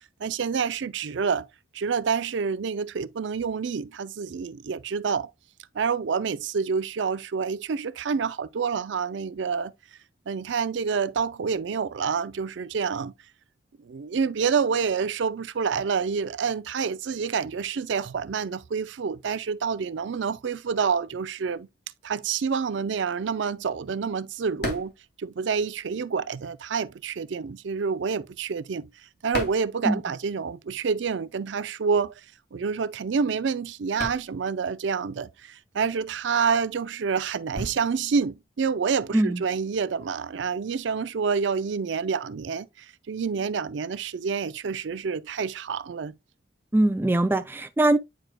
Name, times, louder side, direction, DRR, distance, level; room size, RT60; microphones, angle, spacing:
voice 1, 0.2-1.5 1.7-5.3 5.7-9.7 10.3-13.1 13.8-21.7 22.0-24.9 25.2-28.8 29.2-32.1 32.5-46.1, right 5 dB, 75° right, 0.4 m, -28 dB
sound 1, 24.4-26.1 26.4-30.5 30.8-39.6, left 1 dB, 60° left, 2.5 m, -39 dB
voice 2, 46.7-48.0, right 1 dB, 10° right, 0.3 m, -22 dB
9.1 x 4.7 x 2.2 m
head